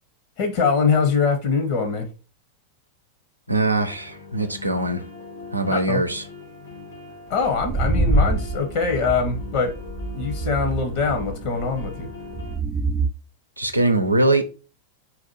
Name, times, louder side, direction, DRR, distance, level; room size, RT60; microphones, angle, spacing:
voice 1, 0.4-2.1 5.7-6.0 7.3-9.7 10.1-12.1, left 5 dB, 50° left, 1.0 m, -23 dB
voice 2, 3.5-5.0 5.5-6.2 13.6-14.4, right 2 dB, 85° right, 0.6 m, -22 dB
sound 1, 3.9-12.6, left 3 dB, 65° left, 1.1 m, -40 dB
sound 2, 7.5-13.1, right 2 dB, 15° right, 0.3 m, -25 dB
4.1 x 2.5 x 4.1 m
figure-of-eight pair, 90°, 0 cm